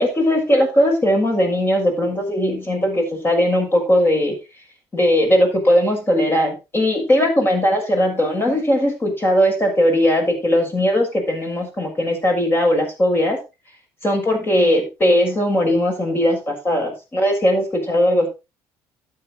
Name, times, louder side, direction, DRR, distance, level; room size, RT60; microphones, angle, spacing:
voice 1, 0.0-4.4 4.9-13.4 14.0-18.3, equal, 25° left, 2 dB, 6.8 m, -18 dB
12.0 x 9.1 x 4.2 m, 0.27 s
cardioid pair, 100°, 9 cm